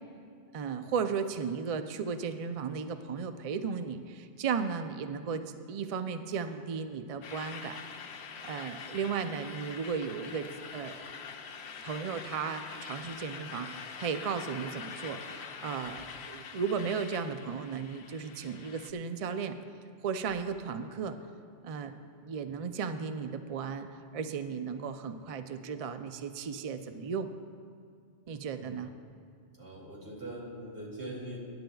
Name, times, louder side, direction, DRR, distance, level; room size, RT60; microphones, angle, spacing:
voice 1, 0.5-7.8 8.4-11.0 11.8-19.6 20.0-21.2 21.6-21.9 22.2-27.3 28.3-28.9, right 6 dB, 50° right, 9 dB, 0.4 m, -35 dB
sound 1, 7.2-18.9, left 6 dB, 75° left, 0.9 m, -44 dB
voice 2, 29.6-31.4, right 1 dB, 70° right, -4 dB, 2.8 m, -42 dB
21.5 x 10.5 x 2.3 m, 2.3 s
omnidirectional pair, 1.1 m